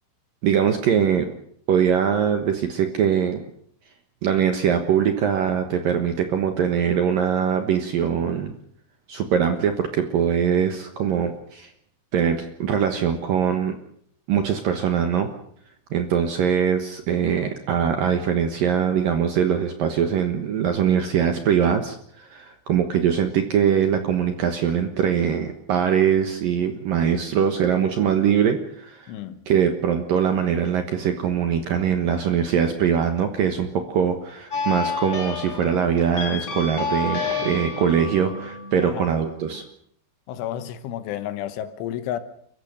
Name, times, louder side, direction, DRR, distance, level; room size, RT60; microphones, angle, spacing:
voice 1, 0.4-1.3 1.7-3.4 4.2-8.5 9.1-11.7 12.1-13.8 14.3-15.3 15.9-29.1 29.5-39.6, right 8 dB, 65° right, 2.3 m, -22 dB
voice 2, 29.1-29.4 38.8-39.1 40.3-42.2, left 11 dB, 80° left, 3.5 m, -31 dB
sound 1, 34.5-39.6, left 4 dB, 30° left, 2.6 m, -30 dB
30.0 x 15.0 x 6.8 m
omnidirectional pair, 5.7 m